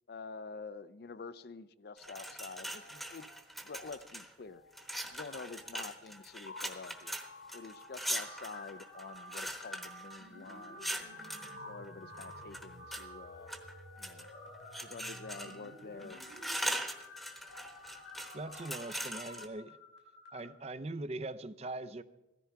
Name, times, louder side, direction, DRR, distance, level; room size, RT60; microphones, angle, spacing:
voice 1, 0.1-3.3 3.6-4.6 5.1-7.2 7.5-10.9 11.7-13.5 14.0-14.3 14.8-16.2, left 4 dB, 55° left, 0.5 m, -47 dB
sound 1, 1.9-3.3 3.6-3.8 4.4-20.4, left 2 dB, 90° left, 4.9 m, -52 dB
sound 2, 2.0-4.3 4.7-11.6 12.2-13.0 13.5-14.3 14.7-15.7 16.0-19.5, equal, ahead, 1.0 m, -41 dB
sound 3, 8.2-8.6 8.9-9.4 9.7-10.2 10.5-10.9 11.2-11.7 12.0-12.5 12.8-13.3, right 6 dB, 80° right, 2.2 m, -52 dB
voice 2, 18.3-19.8 20.3-22.0, right 2 dB, 35° right, 0.5 m, -41 dB
16.0 x 14.0 x 4.6 m
head